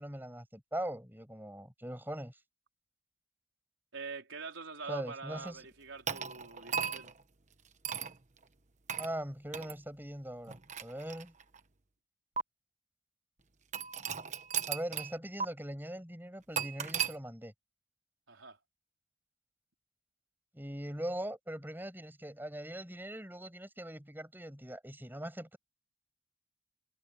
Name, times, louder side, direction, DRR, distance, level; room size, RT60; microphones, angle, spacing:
voice 1, 0.0-2.3 4.9-5.6 9.0-11.3 14.7-17.5 20.5-25.6, right 1 dB, 10° right, 6.6 m, -41 dB
voice 2, 3.9-7.1 18.3-18.6, right 4 dB, 80° right, 4.2 m, -44 dB
sound 1, 6.1-7.2 7.8-8.2 8.9-9.1 9.5-9.7 10.5-11.6 12.4-12.5 13.7-15.1 15.4-15.5 16.6-17.2, right 7 dB, 40° right, 1.2 m, -36 dB
head